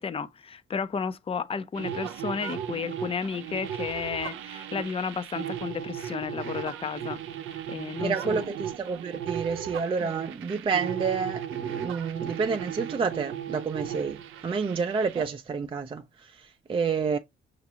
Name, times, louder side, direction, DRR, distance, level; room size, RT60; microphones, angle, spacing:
voice 1, 0.0-7.2 7.7-8.4 10.0-10.1, left 6 dB, 30° left, 0.5 m, -32 dB
sound 1, 1.7-15.3, right 10 dB, 85° right, 0.6 m, -36 dB
voice 2, 8.0-17.2, right 5 dB, 25° right, 0.4 m, -29 dB
5.8 x 2.5 x 2.8 m
cardioid pair, 90°, 20 cm